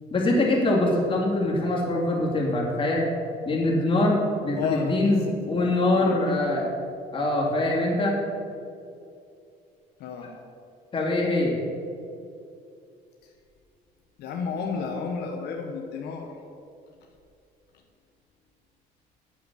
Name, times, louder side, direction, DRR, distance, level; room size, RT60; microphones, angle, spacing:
voice 1, 0.1-3.0 3.5-6.7 7.1-8.1 10.9-11.6, left 2 dB, 30° left, -2 dB, 2.8 m, -23 dB
voice 2, 4.5-4.9 5.5-5.6 5.9-6.4 10.0-10.3 14.2-16.3, left 5 dB, 80° left, 1 dB, 1.2 m, -32 dB
9.1 x 7.4 x 7.0 m, 2.5 s
cardioid pair, 110°, 17 cm